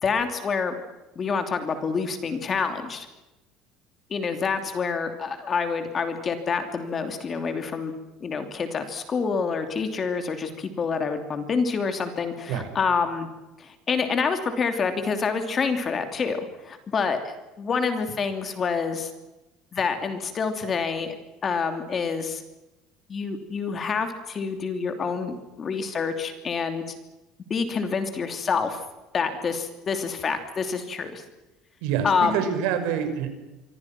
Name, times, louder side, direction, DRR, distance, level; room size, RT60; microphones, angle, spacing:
voice 1, 0.0-0.7 1.1-3.1 4.1-7.9 8.2-13.3 13.6-19.1 19.7-21.2 21.4-22.4 23.1-26.9 27.5-28.8 29.1-31.2 32.0-32.4, left 5 dB, 25° left, 7 dB, 2.9 m, -27 dB
voice 2, 31.8-33.3, right 8 dB, 85° right, 8 dB, 5.6 m, -26 dB
26.5 x 25.0 x 6.0 m, 1.0 s
cardioid pair, 180°, 0 cm